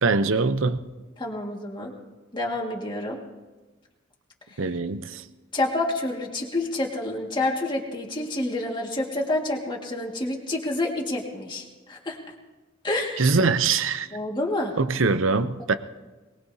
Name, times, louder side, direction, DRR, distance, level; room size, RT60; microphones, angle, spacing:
voice 1, 0.0-0.8 4.6-5.2 13.2-14.1 14.8-15.7, right 4 dB, 70° right, 11 dB, 0.7 m, -23 dB
voice 2, 1.2-1.9 2.3-3.2 4.5-4.6 5.5-12.2 12.8-13.4 14.1-14.7, left 2 dB, 25° left, -1 dB, 1.9 m, -28 dB
22.5 x 19.5 x 2.8 m, 1.2 s
head